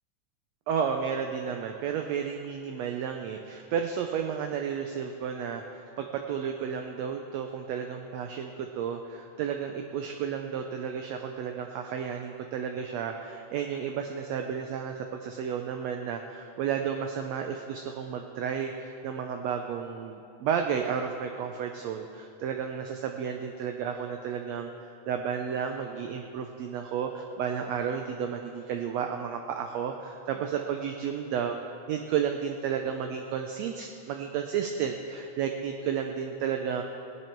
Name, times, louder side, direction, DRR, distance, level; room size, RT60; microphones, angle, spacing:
voice 1, 0.7-31.5 31.9-36.8, right 7 dB, 75° right, 4 dB, 1.6 m, -32 dB
18.5 x 10.5 x 4.5 m, 2.8 s
omnidirectional pair, 3.6 m